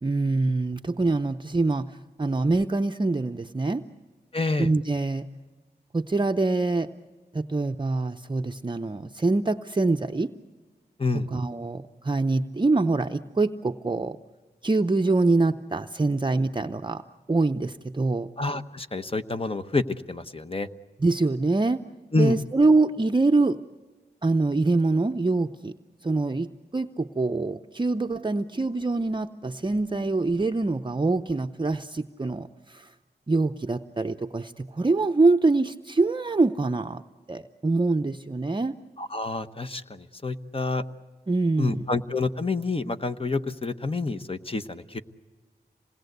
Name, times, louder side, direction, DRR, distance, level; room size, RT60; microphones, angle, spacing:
voice 1, 0.0-3.8 4.6-5.3 5.9-6.9 7.3-10.3 11.1-14.2 14.6-17.0 17.3-18.3 21.0-21.8 22.2-23.6 24.2-25.7 26.0-32.9 33.3-37.0 37.3-38.8 41.3-41.9, right 3 dB, 25° right, 5 dB, 0.6 m, -25 dB
voice 2, 4.3-4.7 11.0-11.3 18.4-20.7 22.1-22.4 39.0-40.8 41.6-45.0, left 3 dB, 35° left, 9 dB, 1.1 m, -28 dB
27.0 x 19.5 x 8.0 m, 1.4 s
wide cardioid pair, 70°, 17 cm